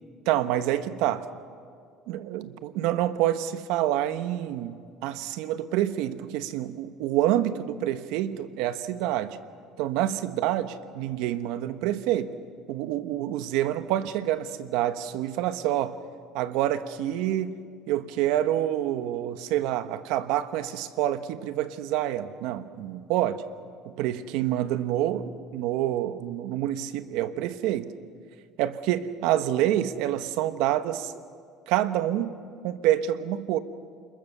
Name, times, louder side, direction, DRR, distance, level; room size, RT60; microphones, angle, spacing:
voice 1, 0.3-1.3 2.1-9.4 9.8-12.4 12.7-16.0 16.3-17.6 17.9-23.4 23.8-27.9 28.6-31.1 31.7-32.4 32.6-33.6, right 12 dB, 75° right, 11 dB, 1.2 m, -27 dB
28.0 x 22.0 x 6.8 m, 2.1 s
cardioid pair, 120°, 0 cm